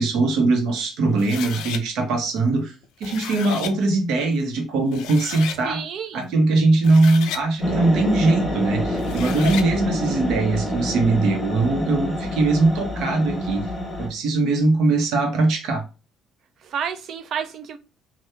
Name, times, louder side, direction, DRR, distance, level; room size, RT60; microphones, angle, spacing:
voice 1, 0.0-2.7 3.0-5.8 6.1-13.7 14.0-15.8, right 3 dB, 80° right, 0.9 m, -21 dB
sound 1, 1.2-1.8 2.8-3.7 4.6-4.7 4.9-5.6 6.7-7.5 8.9-9.7, left 9 dB, 80° left, 0.4 m, -33 dB
voice 2, 5.6-6.3 9.5-9.7 16.6-17.8, right 7 dB, 60° right, 0.4 m, -31 dB
sound 2, 7.6-14.1, equal, 5° left, 1.3 m, -27 dB
2.8 x 2.3 x 3.3 m
cardioid pair, 85°, 0 cm